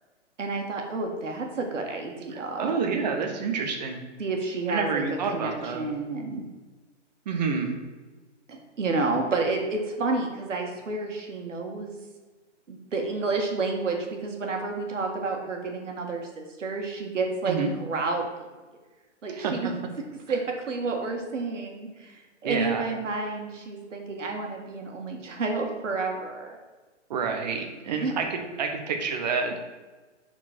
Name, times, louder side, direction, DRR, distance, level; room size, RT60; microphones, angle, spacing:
voice 1, 0.4-2.7 4.2-5.0 5.3-6.4 8.5-12.0 12.7-18.3 19.2-19.7 20.3-20.4 20.7-26.6 28.0-28.1, right 3 dB, 80° right, 2 dB, 1.8 m, -30 dB
voice 2, 2.3-4.0 4.7-5.9 7.3-7.7 17.4-17.7 19.3-19.5 22.4-22.8 27.1-29.6, right 5 dB, 35° right, 4 dB, 1.0 m, -28 dB
9.5 x 4.5 x 4.4 m, 1.3 s
hypercardioid pair, 160°, 37 cm